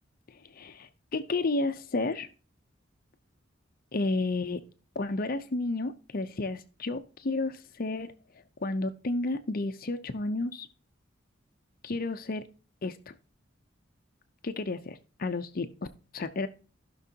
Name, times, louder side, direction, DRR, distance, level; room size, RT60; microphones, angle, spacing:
voice 1, 0.3-2.3 3.9-4.6 5.0-8.1 8.6-10.7 11.8-12.4 12.8-13.1 14.4-15.7 16.1-16.5, left 2 dB, 50° left, 10 dB, 0.6 m, -31 dB
15.5 x 6.0 x 2.8 m, 0.36 s
head